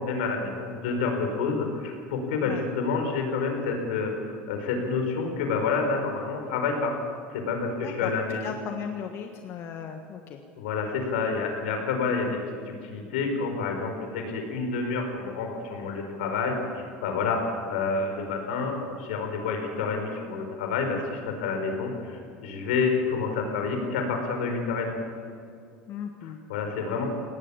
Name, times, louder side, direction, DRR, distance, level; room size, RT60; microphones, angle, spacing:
voice 1, 0.0-6.9 7.3-8.5 10.6-12.4 12.6-25.0 26.2-27.1, left 4 dB, 85° left, 4 dB, 5.0 m, -29 dB
voice 2, 7.8-8.1 8.4-10.4 25.9-26.4, left 8 dB, 50° left, 4 dB, 1.6 m, -36 dB
21.0 x 18.0 x 7.2 m, 2.3 s
supercardioid pair, 100°, 5 cm